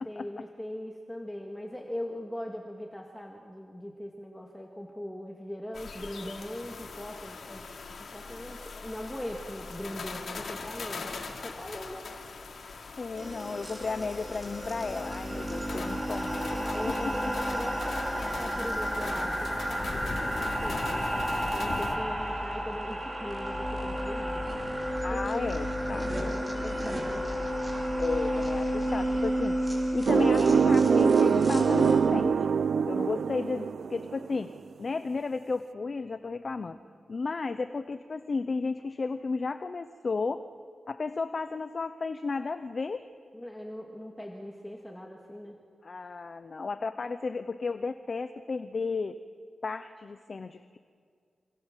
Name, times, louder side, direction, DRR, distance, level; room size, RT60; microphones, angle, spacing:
voice 1, 0.0-7.7 8.1-12.0 16.7-24.5 25.1-26.0 26.6-27.2 33.2-33.3 43.3-45.6, equal, 5° left, 1 dB, 2.0 m, -40 dB
sound 1, 5.7-22.0, left 4 dB, 60° left, 2.8 m, -41 dB
voice 2, 13.0-16.6 17.0-17.3 25.0-26.4 28.0-29.6 29.9-32.6 32.9-34.5 34.8-36.8 37.1-40.4 40.9-43.1 45.8-49.2 49.6-50.8, left 4 dB, 40° left, 10 dB, 0.8 m, -33 dB
sound 2, 13.2-32.0, equal, 20° right, 5.6 m, -32 dB
sound 3, 30.1-34.4, right 6 dB, 70° right, 0.6 m, -24 dB
28.5 x 26.5 x 7.5 m, 2.1 s
wide cardioid pair, 165°, 0 cm